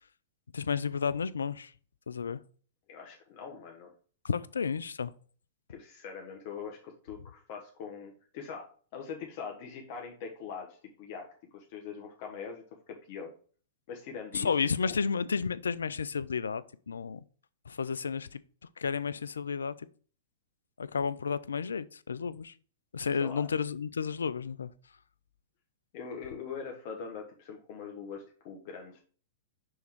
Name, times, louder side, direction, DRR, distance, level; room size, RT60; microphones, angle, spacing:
voice 1, 0.5-1.7 2.1-2.4 4.2-5.1 14.3-17.2 17.7-18.4 18.8-19.7 20.8-22.5 22.9-24.7, left 6 dB, 85° left, 0.4 m, -32 dB
voice 2, 2.9-3.9 5.7-11.3 11.5-13.3 13.9-14.5 14.8-15.0 23.2-23.5 25.9-29.0, left 6 dB, 50° left, 1.2 m, -42 dB
6.3 x 3.5 x 4.6 m
hypercardioid pair, 115°, 0 cm